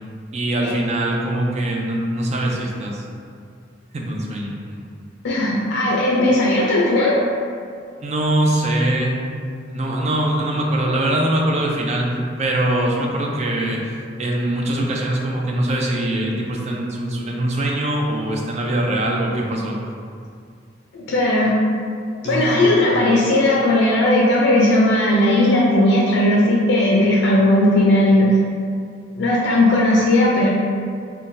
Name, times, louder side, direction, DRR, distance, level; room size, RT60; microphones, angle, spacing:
voice 1, 0.3-3.0 3.9-4.9 8.0-9.1 9.7-12.1 12.4-13.8 14.2-19.8 22.2-22.7, right 1 dB, 35° right, -1 dB, 0.4 m, -22 dB
voice 2, 5.2-7.2 20.9-21.5 22.2-28.4 29.2-30.5, left 1 dB, 65° left, -4 dB, 0.4 m, -17 dB
2.5 x 2.2 x 3.8 m, 2.3 s
head